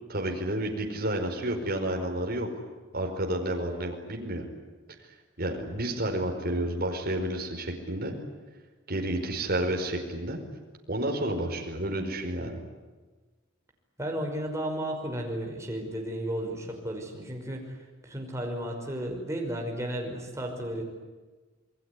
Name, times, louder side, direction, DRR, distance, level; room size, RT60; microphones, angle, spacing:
voice 1, 0.1-2.5 2.9-4.4 5.4-8.1 8.9-10.4 10.9-12.6, right 1 dB, 50° right, 2 dB, 4.8 m, -30 dB
voice 2, 14.0-17.6 18.0-20.8, right 1 dB, 15° right, 1 dB, 5.5 m, -33 dB
28.0 x 21.5 x 9.8 m, 1.3 s
head